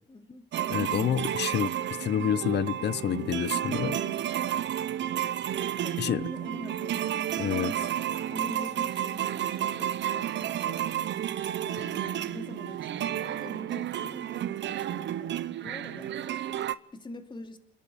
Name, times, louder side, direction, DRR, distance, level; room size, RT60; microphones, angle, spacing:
voice 1, 0.1-0.4 3.9-4.6 5.8-7.9 8.3-10.8 11.5-17.6, left 2 dB, 25° left, 2.6 m, -45 dB
sound 1, 0.5-16.7, right 11 dB, 65° right, 0.9 m, -31 dB
voice 2, 0.7-1.7 2.0-4.0 6.0-6.3 7.4-7.7, left 9 dB, 60° left, 0.8 m, -28 dB
29.5 x 10.5 x 8.6 m
cardioid pair, 90°, 20 cm